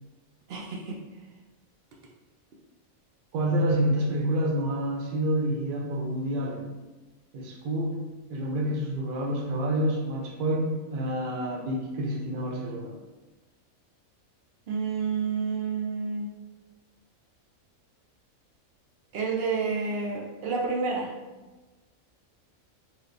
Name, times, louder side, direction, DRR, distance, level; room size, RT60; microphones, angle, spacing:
voice 1, 0.5-1.0 14.7-16.3 19.1-21.1, right 4 dB, 60° right, -2 dB, 0.7 m, -29 dB
voice 2, 3.3-6.7 7.3-8.0 8.3-13.0, right 1 dB, 90° right, 0 dB, 0.4 m, -28 dB
3.3 x 2.8 x 2.5 m, 1.2 s
omnidirectional pair, 1.5 m